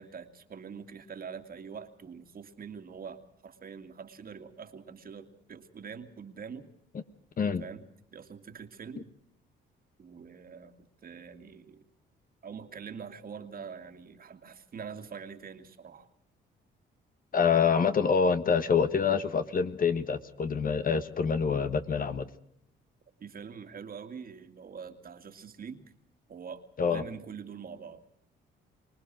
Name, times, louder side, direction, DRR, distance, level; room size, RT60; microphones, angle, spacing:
voice 1, 0.0-6.7 7.6-7.9 8.1-9.1 10.0-11.8 12.4-16.1 23.2-25.9 26.3-28.0, right 6 dB, 45° right, 7 dB, 2.4 m, -44 dB
voice 2, 17.3-22.3 26.8-27.0, left 6 dB, 45° left, 11 dB, 1.6 m, -26 dB
24.5 x 19.5 x 6.2 m, 0.72 s
cardioid pair, 90°, 20 cm